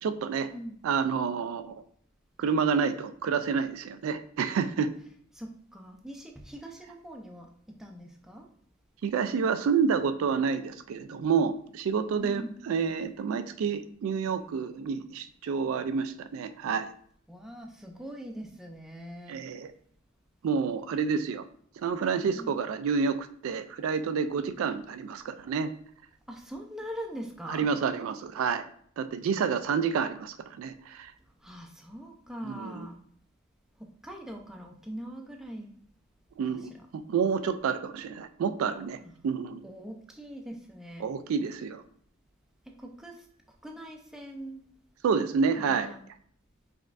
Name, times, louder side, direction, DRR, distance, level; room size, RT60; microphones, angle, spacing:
voice 1, 0.0-0.5 0.8-1.8 2.4-4.9 9.0-16.9 19.3-19.7 20.4-21.4 21.8-25.7 27.5-28.6 29.0-31.1 32.4-32.9 36.4-39.7 41.0-41.8 45.0-45.9, right 6 dB, 70° right, 11 dB, 0.3 m, -29 dB
voice 2, 5.3-7.5 7.8-8.5 12.2-12.7 17.3-19.3 22.3-22.6 24.4-24.7 26.3-27.7 31.4-33.0 34.0-35.7 36.5-36.8 39.0-39.2 39.6-41.1 42.7-43.3 43.6-44.6 45.6-46.0, equal, ahead, 1 dB, 0.5 m, -42 dB
5.1 x 3.5 x 2.5 m, 0.63 s
head